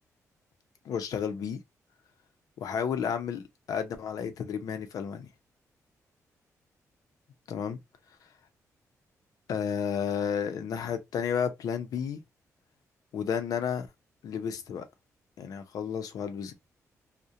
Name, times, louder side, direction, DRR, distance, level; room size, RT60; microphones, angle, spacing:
voice 1, 0.8-1.6 2.6-5.3 7.5-7.8 9.5-12.2 13.1-13.9 14.2-14.9 15.4-16.6, left 7 dB, 75° left, 0.5 m, -32 dB
2.4 x 2.1 x 2.7 m
wide cardioid pair, 130°, 6 cm